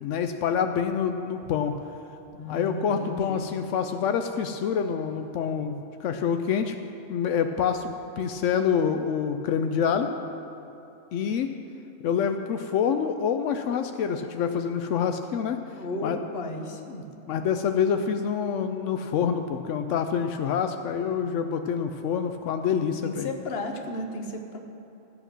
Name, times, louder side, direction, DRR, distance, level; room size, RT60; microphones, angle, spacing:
voice 1, 0.0-1.8 2.5-6.7 7.1-10.1 11.1-11.5 12.0-15.6 16.0-16.2 17.3-23.3, left 7 dB, 85° left, 7 dB, 0.9 m, -26 dB
voice 2, 2.3-3.5 15.8-17.0 23.0-24.6, left 2 dB, 60° left, 4 dB, 1.1 m, -34 dB
13.0 x 7.9 x 6.1 m, 2.9 s
omnidirectional pair, 1.2 m